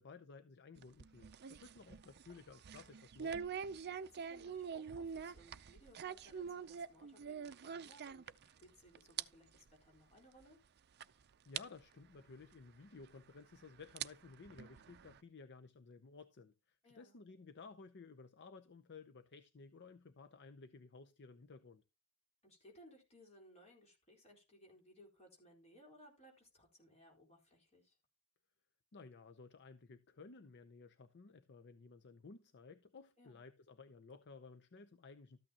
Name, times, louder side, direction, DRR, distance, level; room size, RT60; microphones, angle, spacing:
voice 1, 0.0-3.5 11.4-21.8 28.9-35.4, left 4 dB, 50° left, 0.6 m, -56 dB
sound 1, 0.8-8.7 9.0-9.2 9.6-9.7 10.4-10.5 11.0-11.1 11.6-11.7 13.0-13.1 13.8-15.2, right 7 dB, 50° right, 0.5 m, -45 dB
voice 2, 4.1-10.6 16.8-17.2 22.4-28.0 33.2-33.4, equal, 30° left, 4.1 m, -63 dB
13.5 x 8.7 x 2.9 m
head